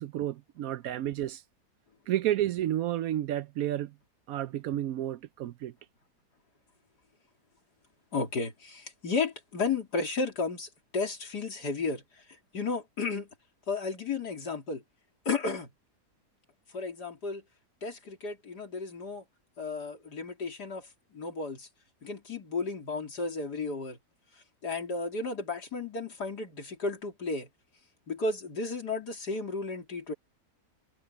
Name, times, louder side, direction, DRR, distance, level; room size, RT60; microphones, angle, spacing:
voice 1, 0.0-1.4 2.1-3.9 4.3-5.7, right 12 dB, 70° right, 0.9 m, -31 dB
voice 2, 8.1-12.0 12.5-13.3 13.7-14.8 15.3-15.7 16.7-17.4 17.8-19.2 19.6-21.7 22.0-24.0 24.6-27.5 28.1-30.1, left 4 dB, 85° left, 3.9 m, -33 dB
omnidirectional pair, 1.7 m